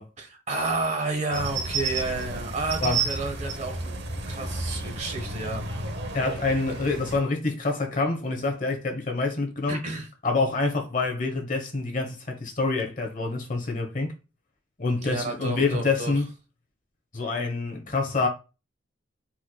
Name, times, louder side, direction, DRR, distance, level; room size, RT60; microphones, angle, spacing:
voice 1, 0.2-3.9 4.2-5.6 9.7-10.1 15.0-16.1, right 3 dB, 40° right, 1.3 m, -31 dB
sound 1, 1.3-7.2, right 3 dB, 60° right, 0.9 m, -32 dB
voice 2, 6.1-9.8 10.2-14.1 14.8-16.3 17.1-18.3, left 3 dB, 45° left, 1.1 m, -26 dB
4.6 x 4.4 x 2.2 m
head